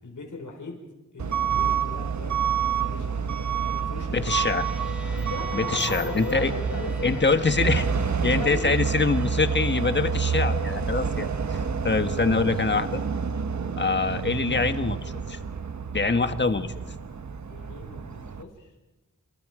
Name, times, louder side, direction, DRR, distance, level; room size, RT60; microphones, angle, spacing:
voice 1, 0.0-0.8 1.1-2.3 2.8-3.4 3.7-4.2 5.0-7.7 8.0-8.8 17.4-18.7, left 3 dB, 75° left, 2 dB, 4.6 m, -39 dB
Truck / Alarm, 1.2-18.4, right 6 dB, 65° right, 1.2 m, -28 dB
voice 2, 4.1-4.7 5.5-6.5 7.0-7.8 8.2-13.0 13.8-15.4 15.9-16.7, left 4 dB, 35° left, 9 dB, 1.5 m, -24 dB
sound 1, 4.6-16.9, left 1 dB, 5° right, 5.9 m, -44 dB
27.5 x 27.0 x 5.0 m, 1.1 s
wide cardioid pair, 95°, 31 cm